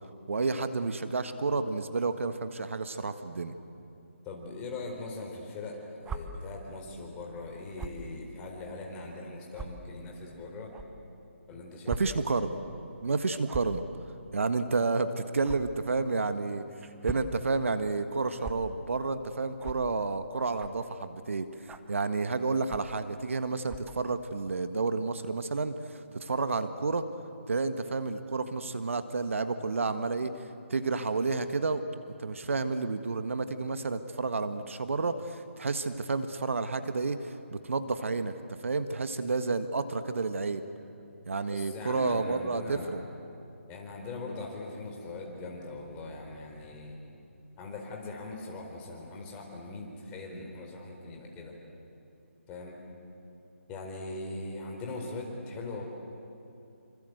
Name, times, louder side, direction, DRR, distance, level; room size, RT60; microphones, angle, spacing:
voice 1, 0.3-3.5 11.9-12.6 13.0-13.8 14.3-16.6 17.0-21.5 21.9-27.1 27.5-30.3 30.7-38.3 38.6-40.6 41.3-43.0, right 3 dB, 70° right, 10 dB, 1.6 m, -30 dB
voice 2, 4.2-10.7 11.5-12.2 41.5-43.0 43.7-47.0 47.6-51.5 52.5-52.8 53.7-55.8, left 2 dB, 15° left, 0 dB, 4.2 m, -41 dB
sound 1, 6.0-6.2 7.8-8.0 8.7-8.8 9.5-9.7 10.7-10.9 11.9-12.0 12.3-12.5 13.4-13.8 15.4-15.6 16.8-17.3 18.4-18.5 19.6-19.8 20.6-20.8 21.7-21.9 22.7-23.0 23.6-23.9, right 5 dB, 5° right, 0.8 m, -39 dB
27.0 x 26.5 x 8.0 m, 2.8 s
figure-of-eight pair, 155°, 7 cm